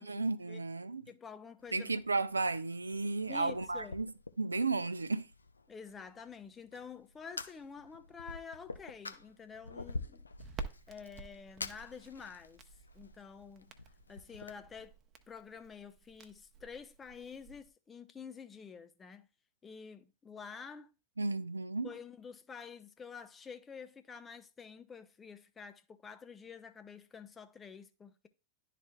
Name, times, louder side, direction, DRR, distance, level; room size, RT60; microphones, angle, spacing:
voice 1, 0.0-1.0 1.7-4.1 4.4-5.3 21.2-21.9, right 3 dB, 80° right, 0.4 m, -33 dB
voice 2, 1.1-1.9 3.3-4.0 5.7-10.3 10.6-12.6 12.9-13.7 14.1-15.0 15.3-19.3 19.6-20.9 21.8-28.3, left 6 dB, 20° left, 0.6 m, -49 dB
Fire, 1.6-14.5, left 3 dB, 80° left, 0.4 m, -48 dB
Crackle, 10.4-17.7, right 4 dB, 30° right, 0.8 m, -50 dB
11.5 x 4.1 x 2.3 m
figure-of-eight pair, 90°, 0 cm